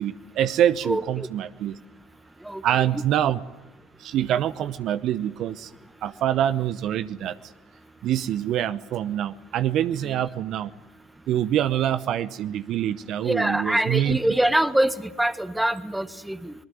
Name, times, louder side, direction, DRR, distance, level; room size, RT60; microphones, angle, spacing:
voice 1, 0.0-1.8 2.6-3.4 4.0-5.7 6.0-7.5 8.0-10.7 11.3-14.2, right 11 dB, 55° right, 13 dB, 0.8 m, -25 dB
voice 2, 0.8-1.3 2.4-3.0 10.0-10.2 13.2-16.5, right 1 dB, 5° right, 12 dB, 1.6 m, -25 dB
25.0 x 20.0 x 9.4 m, 1.0 s
hypercardioid pair, 65°, 0 cm